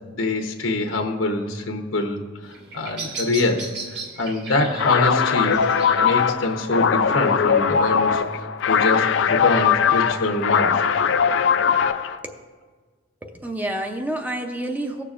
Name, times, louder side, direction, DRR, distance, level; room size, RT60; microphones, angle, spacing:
voice 1, 0.0-3.7 4.2-8.2 8.7-10.8, left 2 dB, 85° left, 3 dB, 0.9 m, -24 dB
Bird vocalization bird call bird song, 2.4-8.4, right 3 dB, 55° right, 1.8 m, -38 dB
sound 1, 4.7-12.2, left 7 dB, 65° left, 0.4 m, -20 dB
voice 2, 13.2-15.0, right 1 dB, 10° right, 4 dB, 0.5 m, -29 dB
18.5 x 6.8 x 2.5 m, 1.5 s
head